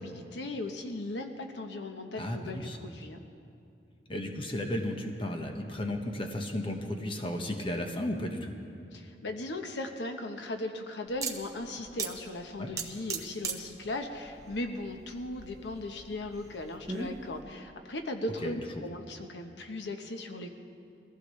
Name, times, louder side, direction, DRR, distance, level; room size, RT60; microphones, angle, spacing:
voice 1, 0.0-3.2 8.9-20.5, left 2 dB, 85° left, 4 dB, 1.0 m, -38 dB
voice 2, 2.2-2.8 4.1-8.5 12.6-12.7 18.4-18.5, left 1 dB, 30° left, 3 dB, 1.2 m, -34 dB
sound 1, 11.1-17.4, right 4 dB, 20° right, 1.0 m, -40 dB
22.5 x 15.0 x 3.2 m, 2.5 s
head